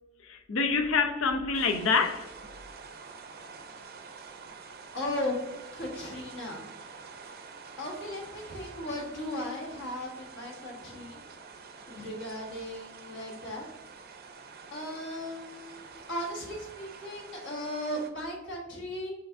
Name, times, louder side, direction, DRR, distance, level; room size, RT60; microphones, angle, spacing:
voice 1, 0.2-2.3, left 5 dB, 80° left, 0.6 m, -26 dB
sound 1, 1.5-18.1, right 5 dB, 50° right, 0.5 m, -47 dB
voice 2, 4.9-5.4 5.7-6.7 7.8-11.2 11.9-13.7 14.7-19.1, left 1 dB, 60° left, 1.2 m, -36 dB
5.6 x 3.4 x 2.5 m
head